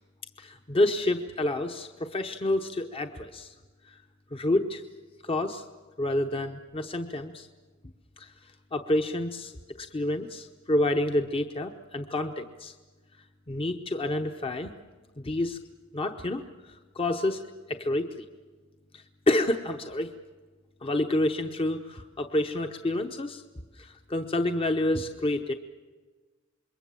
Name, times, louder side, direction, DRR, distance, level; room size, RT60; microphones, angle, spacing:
voice 1, 0.4-3.5 3.9-4.0 4.3-4.8 5.2-5.6 6.0-7.5 8.2-9.5 9.8-12.7 13.5-14.7 15.2-15.6 15.9-18.2 18.9-20.1 20.8-23.4 23.8-25.5, left 1 dB, 30° left, 6 dB, 0.9 m, -29 dB
27.0 x 22.0 x 7.5 m, 1.3 s
head